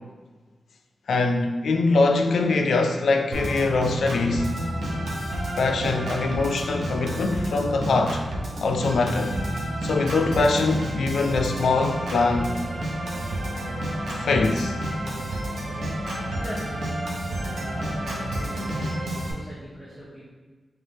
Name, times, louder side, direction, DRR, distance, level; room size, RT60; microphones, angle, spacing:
voice 1, 1.1-4.5 5.6-8.2 8.6-9.4 9.8-12.7 14.2-14.8, left 3 dB, 85° left, 4 dB, 0.3 m, -23 dB
Organ, 3.3-19.3, right 1 dB, 80° right, 0.7 m, -30 dB
voice 2, 16.3-16.9 17.4-18.6 19.2-20.3, equal, 15° right, -7 dB, 0.6 m, -41 dB
3.4 x 3.2 x 2.8 m, 1.4 s
wide cardioid pair, 170°, 0 cm